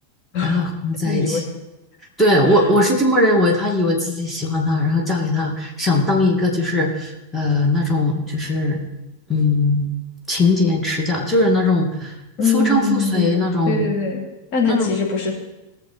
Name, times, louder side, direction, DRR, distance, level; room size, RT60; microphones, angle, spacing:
voice 1, 0.4-1.4 2.2-8.8 9.3-9.9 10.3-12.1 12.5-13.9 14.7-14.9, left 2 dB, 5° left, -1 dB, 2.4 m, -19 dB
voice 2, 1.0-1.4 2.5-2.6 12.4-14.2 14.5-15.3, left 4 dB, 40° left, -2 dB, 2.9 m, -22 dB
20.5 x 6.9 x 4.3 m, 0.98 s
figure-of-eight pair, 90°, 0 cm